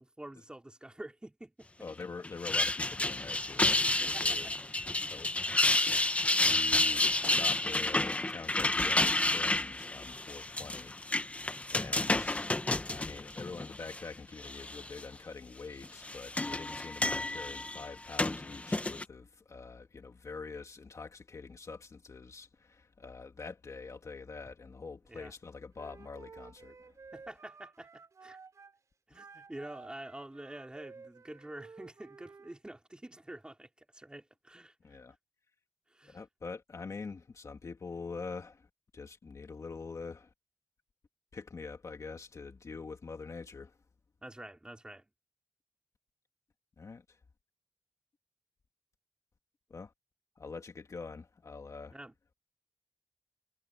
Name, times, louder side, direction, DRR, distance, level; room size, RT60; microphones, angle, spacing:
voice 1, 0.0-1.7 4.0-4.5 4.9-5.2 25.1-25.3 27.1-28.4 29.1-35.0 35.9-36.2 44.2-45.0 51.9-52.1, right 1 dB, 10° right, 3.9 m, -48 dB
voice 2, 1.8-4.5 5.1-5.3 6.4-12.5 12.9-27.0 34.8-35.2 36.1-40.3 41.3-43.8 46.8-47.2 49.7-49.9 50.4-52.0, left 4 dB, 40° left, 2.4 m, -45 dB
sound 1, 2.2-14.0 14.4-15.0 15.8-19.0, left 2 dB, 15° left, 0.9 m, -30 dB
Wind instrument woodwind instrument, 25.8-28.8 29.1-32.6, right 4 dB, 45° right, 4.2 m, -53 dB
wide cardioid pair, 155°, 8 cm